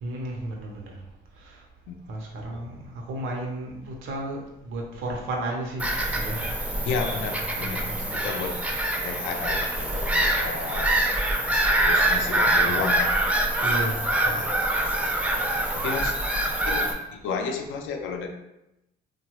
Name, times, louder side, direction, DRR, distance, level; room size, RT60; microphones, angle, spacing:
voice 1, 0.0-1.0 1.4-1.6 2.1-6.5 6.8-7.1 7.6-8.2 12.5-12.9 13.6-14.8 15.3-15.8, right 1 dB, 85° right, 0 dB, 0.7 m, -34 dB
Bird vocalization bird call bird song / Gull seagull, 5.8-16.9, right 1 dB, 5° right, 0.4 m, -25 dB
voice 2, 6.9-8.6 9.0-11.0 11.8-13.2 14.3-14.5 15.7-16.1 16.7-18.3, left 5 dB, 85° left, 4 dB, 0.4 m, -32 dB
3.0 x 2.2 x 2.9 m, 0.89 s
cardioid pair, 90°, 20 cm